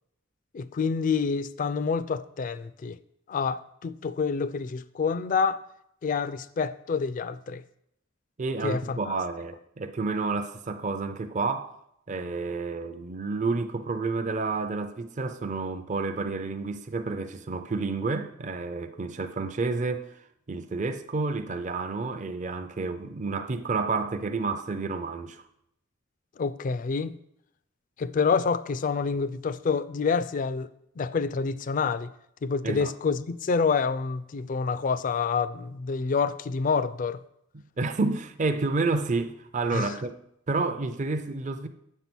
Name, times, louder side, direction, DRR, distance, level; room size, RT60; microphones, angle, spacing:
voice 1, 0.5-3.0 3.3-5.6 6.0-7.6 8.6-9.1 26.4-27.2 28.0-30.7 31.0-32.1 32.4-37.2 39.7-40.0, left 5 dB, 45° left, 0.4 m, -27 dB
voice 2, 8.4-11.7 12.1-20.2 20.5-25.4 32.6-32.9 37.5-40.2 40.5-41.7, right 3 dB, 40° right, 0.5 m, -30 dB
7.5 x 5.5 x 6.1 m
head